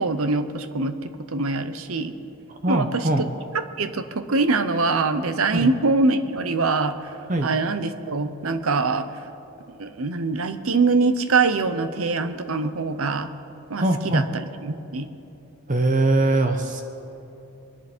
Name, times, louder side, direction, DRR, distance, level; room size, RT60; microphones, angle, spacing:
voice 1, 0.0-2.1 2.7-3.3 3.5-6.9 7.4-9.1 9.8-13.3 13.7-15.1, right 3 dB, 70° right, 10 dB, 0.8 m, -24 dB
voice 2, 2.6-3.2 5.5-5.7 7.3-7.5 13.8-14.2 15.7-16.8, right 2 dB, 35° right, 5 dB, 0.8 m, -21 dB
23.5 x 11.0 x 4.4 m, 2.9 s
head